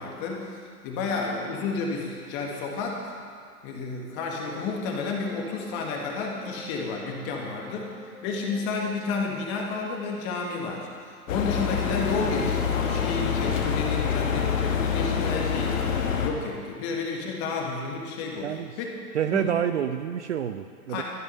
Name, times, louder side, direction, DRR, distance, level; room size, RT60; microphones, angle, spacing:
voice 1, 0.0-3.2 3.6-19.0 19.3-19.5 20.9-21.0, left 4 dB, 25° left, 0 dB, 1.7 m, -31 dB
Wind instrument woodwind instrument, 4.2-10.8, left 1 dB, 10° left, 0.8 m, -48 dB
sound 1, 11.3-16.3, left 7 dB, 55° left, 1.6 m, -26 dB
voice 2, 18.4-18.7 19.1-21.0, right 9 dB, 50° right, 9 dB, 0.6 m, -28 dB
13.5 x 9.8 x 5.6 m, 2.1 s
hypercardioid pair, 140°, 47 cm